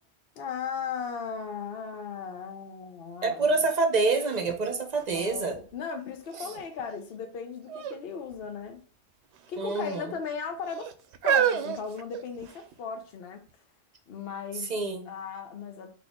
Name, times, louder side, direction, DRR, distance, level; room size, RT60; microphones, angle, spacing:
voice 1, 0.4-3.5 5.1-8.8 9.5-10.9 11.2-13.4 14.1-14.7 15.1-15.9, left 6 dB, 65° left, 0.9 m, -37 dB
voice 2, 3.2-5.6 9.6-10.1 14.7-15.1, right 3 dB, 45° right, 0.8 m, -27 dB
sound 1, 3.7-3.8 4.2-5.7 6.3-6.8 7.7-8.0 8.3-8.5 9.3-10.0 10.7-12.7 13.5-13.6, right 9 dB, 75° right, 0.8 m, -30 dB
4.0 x 2.9 x 3.6 m
omnidirectional pair, 1.1 m